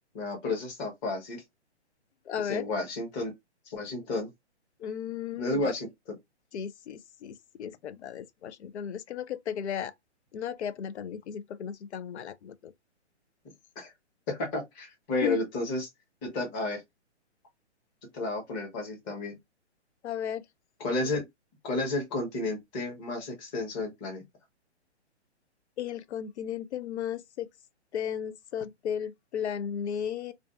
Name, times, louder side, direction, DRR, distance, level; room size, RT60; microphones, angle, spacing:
voice 1, 0.1-1.4 2.4-3.3 3.7-4.3 5.4-6.2 13.8-13.9 14.3-15.9 16.2-16.8 18.1-19.3 20.8-21.2 21.6-24.2, left 2 dB, 20° left, 0.8 m, -32 dB
voice 2, 2.3-2.7 4.8-5.7 6.5-9.9 10.3-12.7 15.2-15.4 20.0-20.4 25.8-27.5 27.9-30.3, left 9 dB, 75° left, 0.5 m, -35 dB
2.5 x 2.3 x 2.3 m
hypercardioid pair, 150°, 34 cm